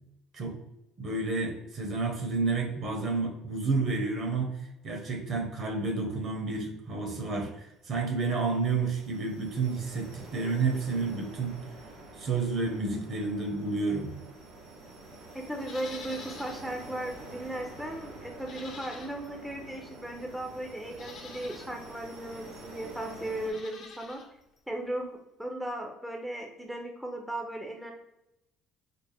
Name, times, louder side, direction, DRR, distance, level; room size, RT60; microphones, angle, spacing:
voice 1, 1.0-4.6 4.8-11.5 12.2-14.1, right 4 dB, 50° right, 2 dB, 1.0 m, -30 dB
sound 1, 7.8-23.5, right 2 dB, 80° right, 1.0 m, -48 dB
voice 2, 15.3-24.2 24.7-27.9, right 1 dB, 5° right, 2 dB, 0.6 m, -37 dB
Livestock farm animals working animals, 15.6-16.7 17.0-17.1 18.4-19.4 20.2-20.3 20.9-21.7 23.4-24.3 24.6-24.7, left 4 dB, 55° left, 0.8 m, -47 dB
4.2 x 2.0 x 3.4 m, 0.88 s
supercardioid pair, 80°, 0 cm